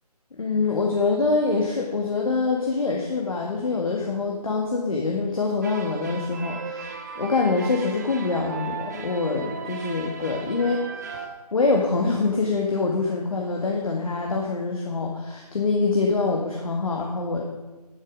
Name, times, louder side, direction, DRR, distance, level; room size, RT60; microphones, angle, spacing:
voice 1, 0.4-11.2 11.5-17.4, left 3 dB, 55° left, -1 dB, 1.9 m, -25 dB
sound 1, 5.6-11.3, right 5 dB, 25° right, 0.9 m, -37 dB
11.0 x 11.0 x 5.2 m, 1.2 s
figure-of-eight pair, 155°, 21 cm